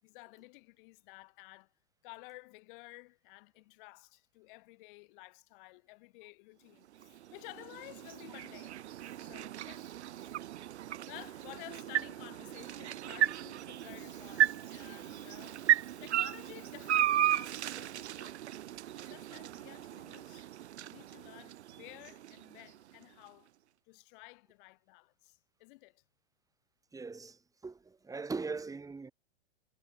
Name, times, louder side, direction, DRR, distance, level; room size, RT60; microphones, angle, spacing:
voice 1, 0.0-1.7 2.0-8.8 9.2-10.1 11.1-18.4 18.9-20.5 20.8-23.5 23.9-26.0, left 26 dB, 50° left, 5.6 m, -53 dB
sound 1, 6.8-23.0, right 12 dB, 75° right, 0.5 m, -35 dB
voice 2, 26.9-29.1, right 4 dB, 10° right, 2.5 m, -40 dB
hypercardioid pair, 105°, 34 cm